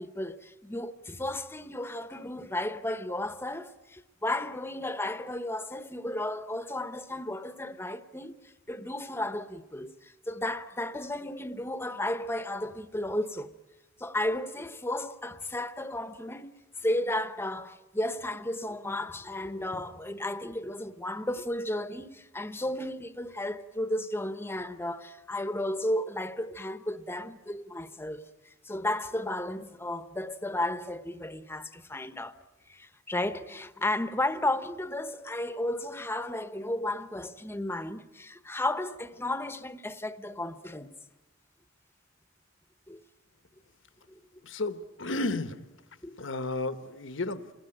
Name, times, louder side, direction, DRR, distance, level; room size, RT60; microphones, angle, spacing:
voice 1, 0.0-13.5 14.0-16.5 16.8-32.4 32.7-40.9 42.9-43.0 44.1-44.2 46.0-46.2, left 1 dB, 10° left, 0.9 m, -33 dB
voice 2, 44.4-45.5 46.2-47.5, left 2 dB, 70° left, 1.2 m, -32 dB
28.5 x 20.0 x 9.0 m
head